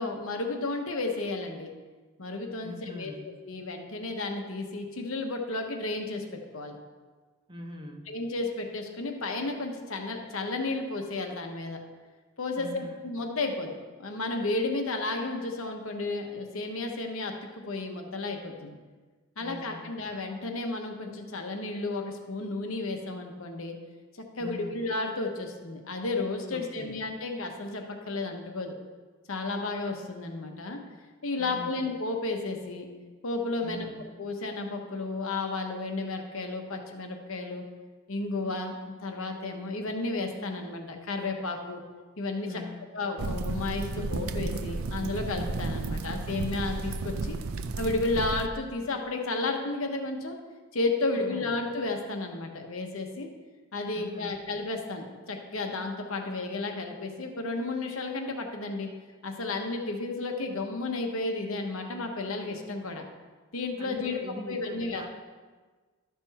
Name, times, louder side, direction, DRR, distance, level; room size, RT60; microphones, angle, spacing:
voice 1, 0.0-1.7 2.2-3.1 3.5-6.8 8.1-11.8 12.4-18.8 19.4-23.7 24.2-28.8 29.3-30.8 31.2-32.9 33.2-33.9 34.2-37.6 38.1-41.8 42.2-42.6 42.9-47.4 47.8-50.4 50.7-53.3 53.7-58.9 59.2-63.1 63.5-64.2 64.5-65.0, left 3 dB, 70° left, 3 dB, 1.1 m, -32 dB
voice 2, 2.6-3.3 7.5-8.2 12.6-13.0 19.4-19.9 24.4-24.8 26.5-27.1 31.4-31.8 33.6-34.0 42.5-42.8 51.1-51.6 53.9-54.3 63.8-65.1, left 1 dB, 20° right, 2 dB, 0.9 m, -42 dB
sound 1, 43.2-48.5, right 3 dB, 80° right, 0.5 m, -33 dB
12.0 x 6.1 x 4.2 m, 1.4 s
head